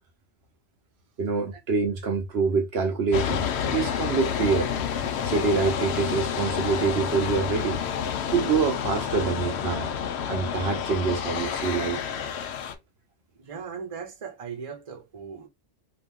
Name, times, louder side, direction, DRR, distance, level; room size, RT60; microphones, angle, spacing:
voice 1, 1.2-4.7 5.2-7.8 8.3-9.9 10.3-12.0, right 5 dB, 65° right, 0.9 m, -26 dB
sound 1, 3.1-12.7, left 8 dB, 70° left, 0.8 m, -29 dB
voice 2, 13.4-15.5, right 6 dB, 35° right, 0.8 m, -38 dB
2.9 x 2.4 x 3.5 m
omnidirectional pair, 1.2 m